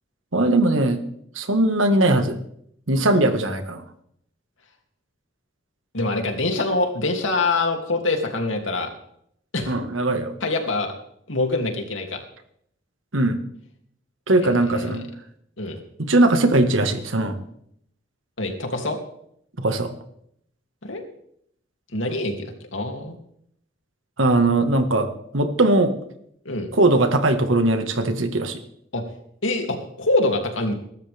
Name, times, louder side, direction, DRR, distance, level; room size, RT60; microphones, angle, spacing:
voice 1, 0.3-1.0 1.4-2.4 2.9-3.8 9.7-10.3 13.1-13.4 14.3-15.1 16.0-17.4 19.6-19.9 24.2-25.1 25.3-25.9 26.7-28.6, right 2 dB, 85° right, 7 dB, 1.8 m, -20 dB
voice 2, 5.9-8.9 9.5-9.7 10.4-10.9 11.3-12.2 14.4-15.0 15.6-15.8 18.4-19.0 20.8-21.0 21.9-23.2 26.4-26.7 28.9-29.0 29.4-30.7, left 2 dB, 80° left, 3 dB, 2.9 m, -25 dB
22.5 x 13.0 x 3.6 m, 0.71 s
head